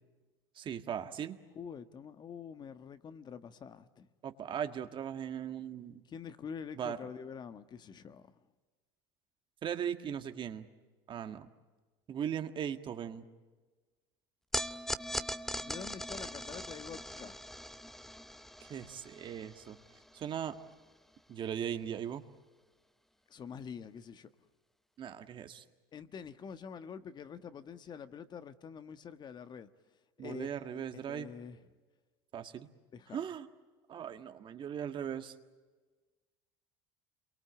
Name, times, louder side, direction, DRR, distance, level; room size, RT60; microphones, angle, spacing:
voice 1, 0.6-1.4 4.2-6.0 6.8-7.0 9.6-10.7 11.1-11.5 12.1-13.3 18.6-19.8 20.1-20.6 21.3-22.2 25.0-25.6 30.2-31.3 32.3-32.7 33.1-33.5 33.9-35.3, right 9 dB, 40° right, 1.8 m, -38 dB
voice 2, 1.5-4.1 6.1-8.3 15.6-17.4 18.9-19.0 23.3-24.3 25.9-29.7 30.2-31.6 32.9-33.3, left 7 dB, 35° left, 1.4 m, -46 dB
sound 1, 14.5-20.9, equal, 5° left, 0.9 m, -41 dB
28.0 x 23.5 x 8.9 m
supercardioid pair, 105°, 13 cm